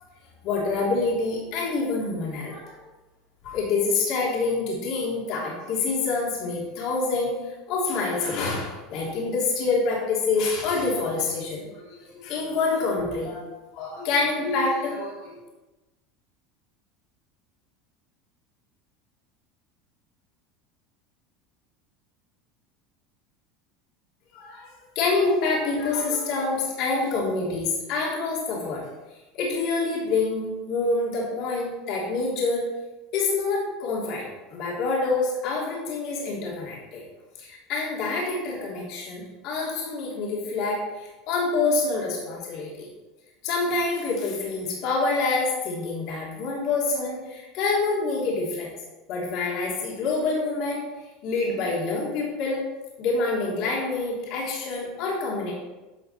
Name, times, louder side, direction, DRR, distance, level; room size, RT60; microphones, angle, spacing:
voice 1, 0.4-2.8 3.4-13.4 13.7-15.4 24.3-24.7 24.9-28.8 29.3-32.6 33.1-37.0 37.4-42.9 43.4-48.7 49.1-50.9 51.2-52.6 53.0-55.5, left 3 dB, 60° left, -4 dB, 3.2 m, -27 dB
11.0 x 6.1 x 4.4 m, 1.1 s
hypercardioid pair, 90°, 0 cm